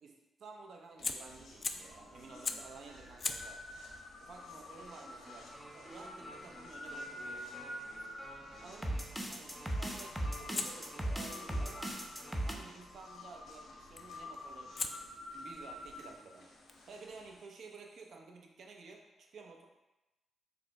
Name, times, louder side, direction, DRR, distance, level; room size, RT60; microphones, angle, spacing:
voice 1, 0.0-3.6 4.2-7.5 8.6-12.0 12.4-16.5 16.9-19.7, right 4 dB, 65° right, 2 dB, 0.6 m, -53 dB
Fire, 0.9-2.0 2.4-2.8 3.2-8.1 10.5-12.6 14.0-14.3 14.8-18.2, left 4 dB, 45° left, 0.3 m, -45 dB
sound 1, 1.0-17.4, left 1 dB, 75° left, 0.9 m, -49 dB
sound 2, 5.2-12.5, right 1 dB, 5° right, 0.7 m, -40 dB
4.7 x 2.1 x 3.5 m, 1.0 s
hypercardioid pair, 45°, 0 cm